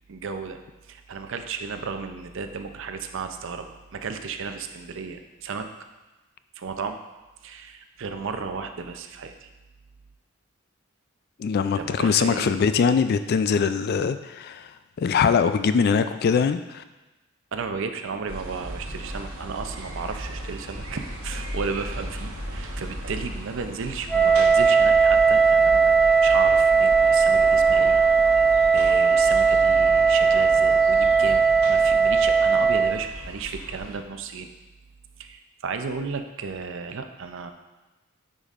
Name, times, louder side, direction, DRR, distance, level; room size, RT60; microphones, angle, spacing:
voice 1, 0.1-0.6 0.9-5.7 6.6-7.0 7.4-9.5 11.7-12.6 17.5-28.0 28.7-34.5 35.2-37.5, right 5 dB, 65° right, 7 dB, 0.5 m, -34 dB
voice 2, 11.4-14.7 15.0-16.8, left 6 dB, 50° left, 11 dB, 0.3 m, -22 dB
sound 1, 18.3-34.0, right 1 dB, 85° right, 1.0 m, -36 dB
Wind instrument woodwind instrument, 24.1-33.0, right 5 dB, 5° left, 0.7 m, -18 dB
9.4 x 5.1 x 2.5 m, 1.1 s
head